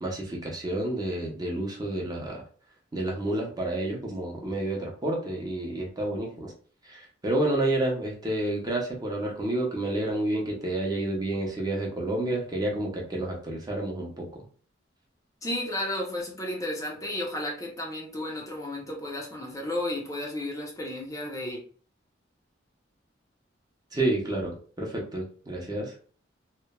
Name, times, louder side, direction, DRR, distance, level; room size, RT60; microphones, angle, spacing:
voice 1, 0.0-2.4 2.9-6.5 6.8-14.4 23.9-25.9, right 1 dB, 20° right, -1 dB, 0.6 m, -30 dB
voice 2, 15.4-21.6, left 1 dB, 20° left, -1 dB, 0.5 m, -33 dB
2.9 x 2.1 x 2.2 m, 0.42 s
head